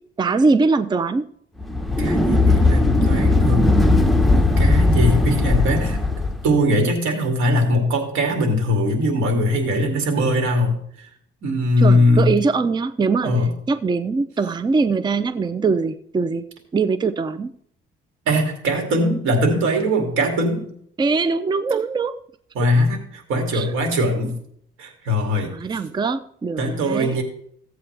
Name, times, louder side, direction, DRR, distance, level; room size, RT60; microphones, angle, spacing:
voice 1, 0.2-1.3 11.8-16.5 16.7-17.5 21.0-22.2 23.5-23.7 25.4-27.2, right 4 dB, 20° right, 13 dB, 0.5 m, -22 dB
sound 1, 1.6-6.5, left 2 dB, ahead, 1.0 m, -17 dB
voice 2, 2.0-3.7 4.6-6.0 6.4-10.8 11.4-12.3 13.2-13.5 18.3-20.7 22.6-24.3 24.8-25.6 26.6-27.2, left 1 dB, 85° right, 3 dB, 2.4 m, -20 dB
15.5 x 7.9 x 3.3 m, 0.67 s
cardioid pair, 90°, 20 cm